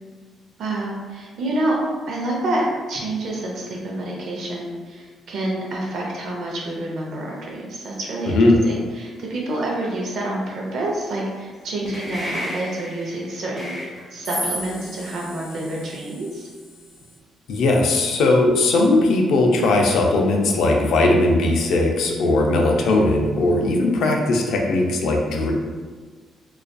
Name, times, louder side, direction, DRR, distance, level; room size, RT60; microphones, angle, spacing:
voice 1, 0.6-1.8 2.1-13.8 14.1-16.5, right 1 dB, 70° right, -2 dB, 0.6 m, -28 dB
voice 2, 8.3-8.6 17.5-25.5, left 2 dB, 75° left, 1 dB, 0.4 m, -18 dB
sound 1, 11.9-17.1, equal, 5° left, 0.9 m, -33 dB
2.5 x 2.3 x 2.2 m, 1.5 s
cardioid pair, 90°, 0 cm